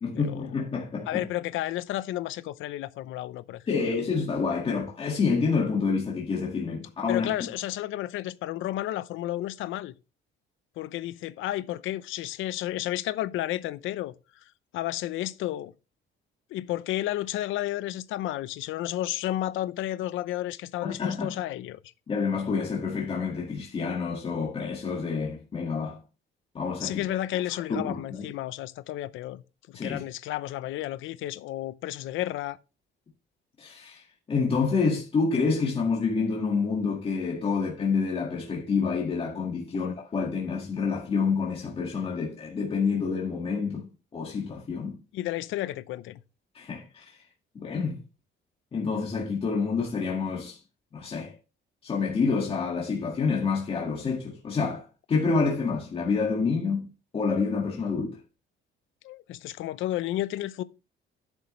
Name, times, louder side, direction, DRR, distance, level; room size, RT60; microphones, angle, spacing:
voice 1, 0.0-1.2 3.7-7.3 20.8-21.3 22.1-26.0 26.5-27.2 27.5-28.3 29.7-30.0 33.6-34.0 34.3-43.9 44.1-45.0 46.5-47.2 47.6-47.9 48.7-50.6 50.9-51.3 51.8-56.9 57.1-58.2, left 5 dB, 30° left, 2.0 m, -28 dB
voice 2, 1.1-3.6 7.1-9.9 10.8-14.1 14.7-15.7 16.5-21.8 26.8-29.4 29.7-32.6 45.1-46.2 59.0-60.6, left 14 dB, 80° left, 0.7 m, -32 dB
11.0 x 8.1 x 3.1 m
cardioid pair, 165°, 20 cm